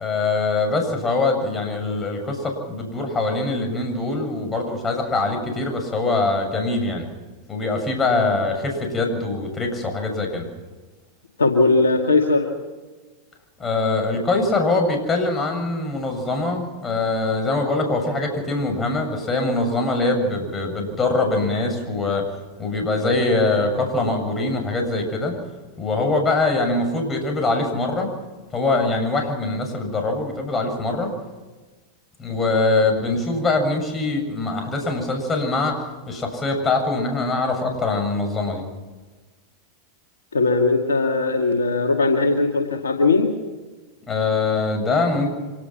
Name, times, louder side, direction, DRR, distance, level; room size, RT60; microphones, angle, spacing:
voice 1, 0.0-7.1 7.5-10.5 13.6-22.3 22.6-25.4 25.8-28.1 28.5-31.1 32.2-35.8 36.1-38.6 44.1-45.3, left 3 dB, 20° left, 4 dB, 7.4 m, -23 dB
voice 2, 11.4-12.5 30.9-31.0 40.3-43.3, left 3 dB, 90° left, 3 dB, 2.2 m, -19 dB
26.5 x 18.5 x 6.0 m, 1.3 s
hypercardioid pair, 100°, 0 cm